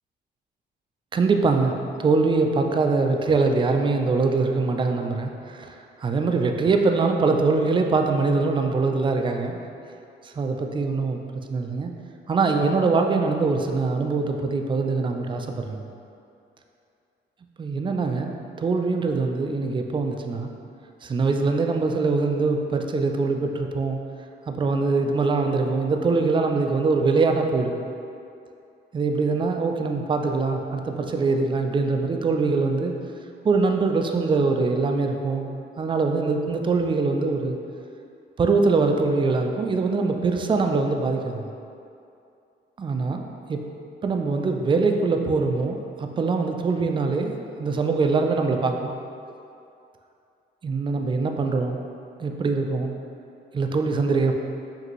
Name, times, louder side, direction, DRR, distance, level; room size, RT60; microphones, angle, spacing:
voice 1, 1.1-1.7 2.0-5.7 6.0-9.6 10.2-11.2 11.5-11.9 12.3-15.8 17.6-20.5 21.0-24.0 24.5-27.8 28.9-32.9 33.4-35.5 35.8-37.6 38.4-41.4 42.8-43.2 43.5-43.6 44.0-48.9 50.6-51.8 52.2-52.9 53.5-54.3, right 4 dB, 25° right, 4 dB, 0.3 m, -23 dB
4.9 x 2.6 x 3.0 m, 2.6 s
cardioid pair, 90°, 20 cm